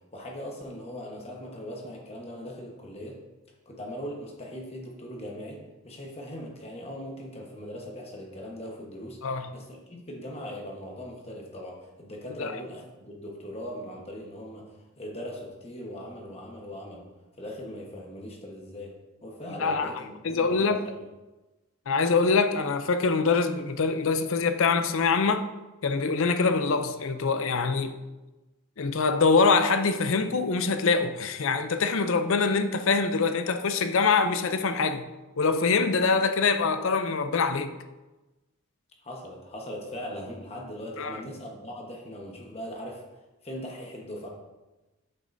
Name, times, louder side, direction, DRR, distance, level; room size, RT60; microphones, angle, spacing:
voice 1, 0.1-3.2 3.7-9.2 9.5-17.0 17.4-18.9 19.2-20.8 39.0-43.0 43.4-44.3, equal, 25° left, 1.1 m, -40 dB
voice 2, 20.2-20.8 21.9-25.5 25.8-28.0 28.8-35.0 35.4-37.8 41.0-41.2, left 4 dB, 60° left, 0.5 m, -24 dB
8.3 x 6.7 x 2.6 m
head